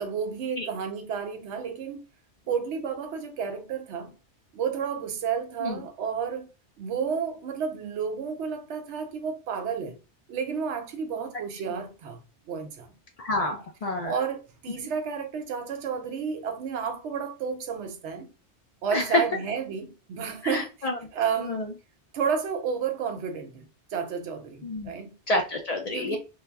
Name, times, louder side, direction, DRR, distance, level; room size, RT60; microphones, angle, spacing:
voice 1, 0.0-2.0 2.5-4.1 4.5-6.5 6.8-10.0 10.3-12.2 12.5-13.0 13.4-13.6 14.0-18.3 18.8-21.7 22.1-25.2 25.8-26.2, right 6 dB, 75° right, 0.9 m, -31 dB
voice 2, 13.2-14.2 18.9-19.2 20.4-20.9 21.5-21.6 24.6-24.9 25.3-26.2, left 1 dB, 75° left, 0.3 m, -28 dB
2.2 x 2.0 x 3.3 m
omnidirectional pair, 1.2 m